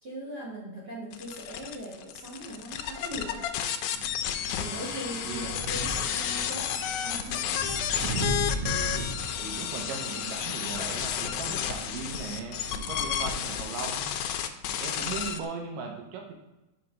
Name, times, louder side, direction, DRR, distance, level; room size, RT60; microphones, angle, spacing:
voice 1, 0.0-3.4 4.5-6.7 7.0-7.6, right 1 dB, 45° right, -6 dB, 1.6 m, -40 dB
sound 1, 1.1-15.4, left 9 dB, 80° left, 1.8 m, -32 dB
Wind, 3.9-13.9, right 2 dB, 70° right, 2.3 m, -38 dB
voice 2, 5.3-5.6 8.6-9.1 9.4-14.1 14.6-16.3, right 5 dB, 85° right, 2 dB, 2.6 m, -38 dB
5.8 x 4.5 x 5.3 m, 1.0 s
omnidirectional pair, 3.7 m